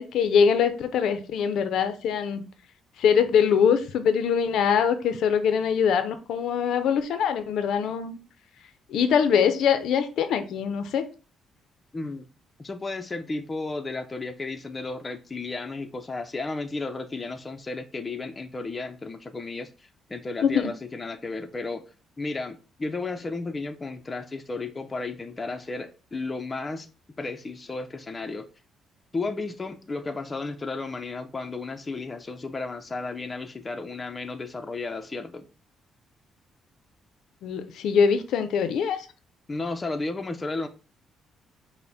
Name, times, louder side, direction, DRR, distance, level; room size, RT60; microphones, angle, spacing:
voice 1, 0.0-2.4 3.0-8.2 8.9-11.1 20.4-20.7 37.4-39.1, left 7 dB, 75° left, 0.5 m, -23 dB
voice 2, 11.9-12.3 12.6-21.9 22.2-26.9 27.2-28.5 29.1-35.5 39.5-40.7, left 3 dB, 25° left, 0.5 m, -33 dB
5.5 x 2.1 x 4.0 m
cardioid pair, 90°, 0 cm